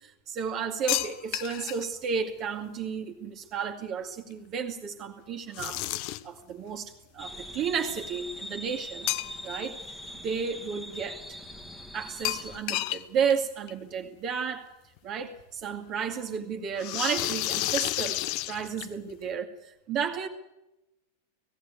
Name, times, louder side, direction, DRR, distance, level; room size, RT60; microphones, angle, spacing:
voice 1, 0.0-5.8 6.2-9.1 9.4-9.8 10.1-11.4 11.9-14.7 15.0-18.2 18.5-20.3, right 6 dB, 35° right, 3 dB, 2.3 m, -32 dB
sound 1, 0.9-1.9 5.5-6.4 9.1-9.7 10.0-10.1 12.2-13.0 13.3-13.4 13.7-13.8 15.0-15.1 16.8-19.1, left 16 dB, 45° left, 0.8 m, -31 dB
sound 2, 7.2-12.6, left 1 dB, 5° left, 1.9 m, -42 dB
19.0 x 16.0 x 9.6 m, 0.94 s
figure-of-eight pair, 90°, 0 cm